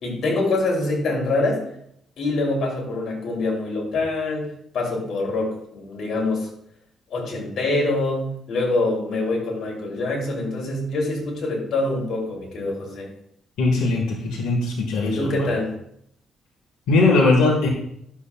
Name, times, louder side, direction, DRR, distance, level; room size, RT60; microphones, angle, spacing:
voice 1, 0.0-1.6 2.2-6.5 7.1-13.1 15.0-15.7, left 2 dB, 65° left, -1 dB, 3.0 m, -25 dB
voice 2, 13.6-15.5 16.9-17.7, left 3 dB, 90° left, -2 dB, 1.6 m, -20 dB
11.0 x 7.3 x 2.3 m, 0.72 s
cardioid pair, 90°, 0 cm